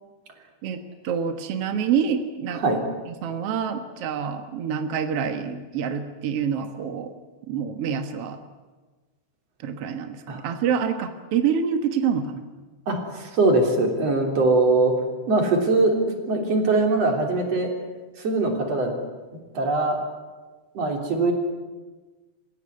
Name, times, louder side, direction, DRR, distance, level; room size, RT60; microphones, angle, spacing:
voice 1, 1.0-2.6 3.1-7.1 7.5-8.4 9.6-12.4, right 7 dB, 70° right, 7 dB, 1.4 m, -26 dB
voice 2, 12.9-14.9 15.3-16.0 16.3-17.7 18.2-18.9 19.5-20.0 20.7-21.3, right 2 dB, 40° right, 3 dB, 4.1 m, -21 dB
28.0 x 16.0 x 9.8 m, 1.3 s
omnidirectional pair, 4.8 m